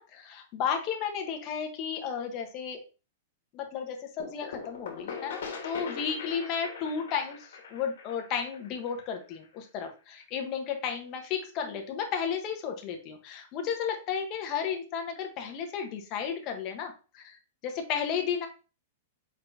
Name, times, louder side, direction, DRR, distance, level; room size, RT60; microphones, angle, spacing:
voice 1, 0.0-2.8 3.5-18.5, left 7 dB, 30° left, 4 dB, 0.8 m, -33 dB
sound 1, 4.2-9.8, left 5 dB, 80° left, 1.2 m, -41 dB
4.6 x 4.3 x 2.6 m, 0.34 s
supercardioid pair, 160°, 0 cm